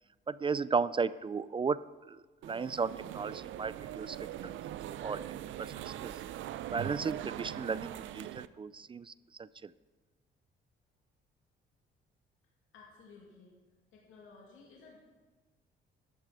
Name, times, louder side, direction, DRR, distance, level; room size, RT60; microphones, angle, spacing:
voice 1, 0.3-4.2 4.4-4.5 5.0-5.3 5.6-6.1 6.7-9.1 9.4-9.7, right 5 dB, 25° right, 18 dB, 0.3 m, -35 dB
sound 1, 2.4-8.5, right 12 dB, 75° right, 0.6 m, -41 dB
voice 2, 12.7-13.6 13.9-15.0, left 4 dB, 85° left, -2 dB, 2.4 m, -55 dB
13.0 x 11.5 x 5.0 m, 1.3 s
cardioid pair, 90°, 20 cm